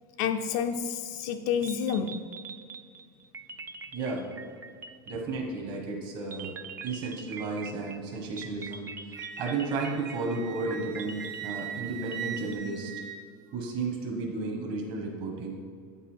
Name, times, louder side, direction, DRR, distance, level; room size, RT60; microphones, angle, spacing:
voice 1, 0.2-2.3 5.1-5.2, left 7 dB, 60° left, 0.4 m, -29 dB
sound 1, 1.3-1.4 1.6-5.6 6.3-12.5, right 5 dB, 20° right, 0.3 m, -43 dB
voice 2, 3.9-4.3 5.1-6.5 6.8-8.9 9.4-12.9 13.5-15.6, right 3 dB, 45° right, 1.2 m, -33 dB
Wind instrument woodwind instrument, 9.1-13.7, right 9 dB, 75° right, 0.8 m, -41 dB
8.2 x 5.4 x 4.4 m
supercardioid pair, 145°, 11 cm